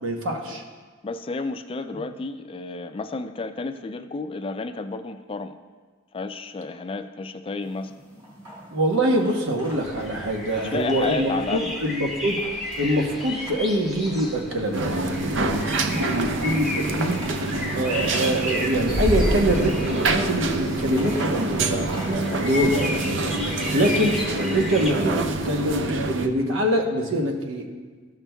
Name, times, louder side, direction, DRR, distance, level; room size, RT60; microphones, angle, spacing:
voice 1, 0.0-0.6 8.7-12.4 12.8-17.2 17.7-21.8 22.4-23.5 23.7-24.2 24.5-27.7, right 1 dB, 85° right, 2 dB, 1.0 m, -24 dB
voice 2, 1.0-5.6 6.1-7.9 10.6-11.7 22.3-22.4, left 3 dB, 25° left, 9 dB, 0.3 m, -31 dB
sound 1, 7.6-22.4, equal, 20° right, 1.9 m, -43 dB
sound 2, 9.7-24.9, left 1 dB, ahead, 0.9 m, -32 dB
sound 3, 14.7-26.3, right 2 dB, 65° right, 0.5 m, -26 dB
13.5 x 6.0 x 2.3 m, 1.5 s
head